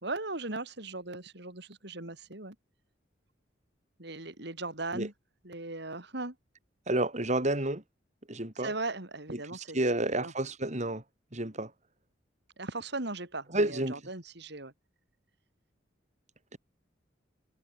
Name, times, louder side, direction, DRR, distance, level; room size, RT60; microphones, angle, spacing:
voice 1, 0.0-2.6 4.0-5.1 5.4-6.4 8.5-10.3 12.6-14.7, right 2 dB, 65° right, 4.2 m, -38 dB
voice 2, 6.9-7.8 8.3-8.7 9.7-11.0 11.3-11.7 13.5-14.0 16.5-16.6, right 1 dB, 40° right, 4.1 m, -30 dB
head